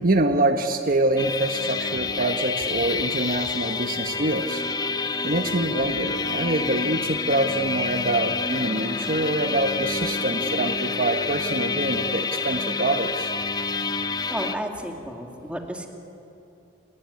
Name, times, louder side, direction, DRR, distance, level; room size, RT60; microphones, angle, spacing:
voice 1, 0.0-4.6 5.2-13.3, right 2 dB, 45° right, 6 dB, 1.2 m, -25 dB
sound 1, 1.2-14.6, left 4 dB, 20° left, 0.8 m, -28 dB
voice 2, 14.3-15.9, equal, 5° right, 3 dB, 2.5 m, -32 dB
30.0 x 20.0 x 9.8 m, 2.9 s
head